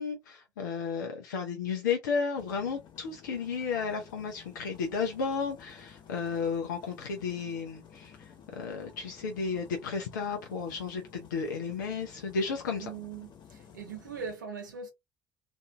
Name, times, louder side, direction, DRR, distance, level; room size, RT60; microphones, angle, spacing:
voice 1, 0.0-12.9, left 5 dB, 75° left, 0.5 m, -33 dB
sound 1, 2.3-14.4, left 7 dB, 50° left, 0.8 m, -54 dB
voice 2, 12.8-14.9, right 6 dB, 80° right, 0.7 m, -40 dB
2.6 x 2.5 x 2.2 m
figure-of-eight pair, 55°, 10 cm